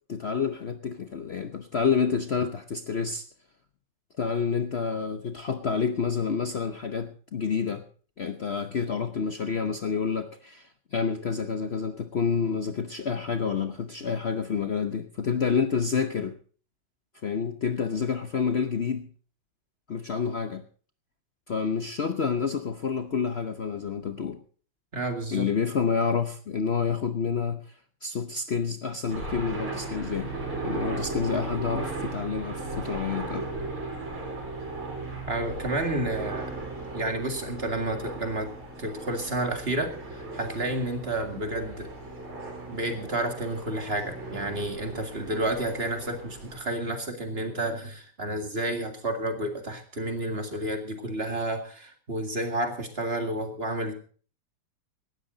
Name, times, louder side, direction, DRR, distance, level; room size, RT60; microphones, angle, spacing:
voice 1, 0.1-3.2 4.2-7.8 8.2-16.3 17.2-19.1 19.9-20.6 21.5-24.4 25.3-27.6 28.0-30.3 30.6-33.5, left 6 dB, 80° left, 8 dB, 0.5 m, -28 dB
voice 2, 24.9-25.5 35.3-36.5 36.9-38.5 38.8-41.9 42.7-53.9, right 1 dB, 25° right, 5 dB, 2.3 m, -30 dB
sound 1, 29.1-46.6, right 3 dB, 70° right, 5.6 m, -37 dB
18.0 x 13.0 x 4.0 m, 0.43 s
omnidirectional pair, 2.4 m